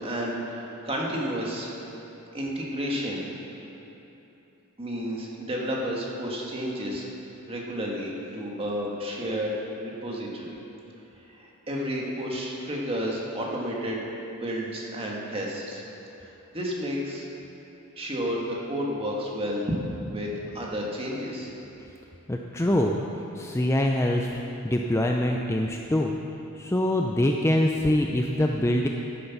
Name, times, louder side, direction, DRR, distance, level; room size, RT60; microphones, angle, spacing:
voice 1, 0.0-1.7 2.3-3.3 4.8-7.1 7.4-10.6 11.2-15.8 16.2-17.3 17.9-19.8 20.1-20.3 20.5-21.5, equal, 25° right, -3 dB, 1.8 m, -31 dB
voice 2, 22.3-23.0 23.3-26.1 26.6-28.9, left 1 dB, 10° left, 1 dB, 0.5 m, -24 dB
11.5 x 9.5 x 6.0 m, 3.0 s
head